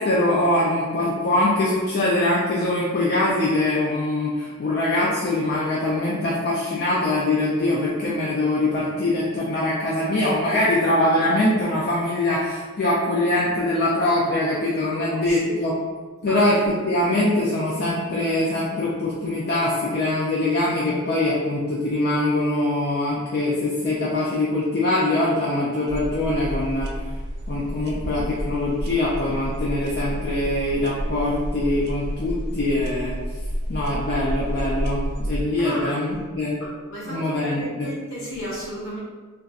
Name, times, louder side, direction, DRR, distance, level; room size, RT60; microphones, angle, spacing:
voice 1, 0.0-15.7 16.2-26.9 27.5-33.2 33.7-36.6 37.0-37.9, left 1 dB, 45° left, -5 dB, 0.4 m, -23 dB
voice 2, 15.1-15.6 16.3-16.4 35.6-35.9 36.6-39.0, equal, 60° left, -6 dB, 1.1 m, -34 dB
sound 1, 25.9-35.4, equal, 50° right, 0.4 m, -30 dB
3.9 x 2.2 x 2.4 m, 1.4 s
head